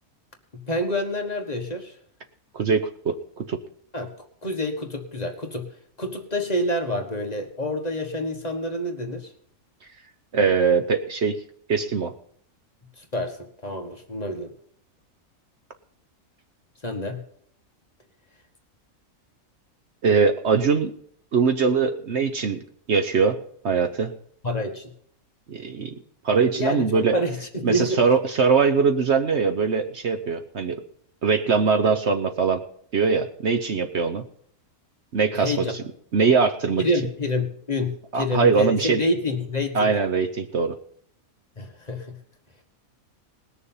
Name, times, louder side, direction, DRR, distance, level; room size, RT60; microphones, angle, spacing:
voice 1, 0.5-1.9 3.9-4.1 4.4-5.7 6.0-9.3 13.0-14.5 16.8-17.2 24.4-24.9 26.6-28.0 35.3-35.7 36.8-39.9 41.6-42.2, left 1 dB, 30° left, 3 dB, 1.5 m, -28 dB
voice 2, 2.5-3.6 10.3-11.4 11.7-12.1 20.0-20.9 21.3-22.6 22.9-23.4 23.6-24.1 25.5-25.9 26.2-27.2 27.6-30.8 31.2-32.6 32.9-34.2 35.1-35.6 36.1-36.8 38.1-39.0 39.7-40.7, right 5 dB, 55° right, 8 dB, 1.1 m, -21 dB
19.5 x 6.8 x 5.6 m, 0.63 s
omnidirectional pair, 1.5 m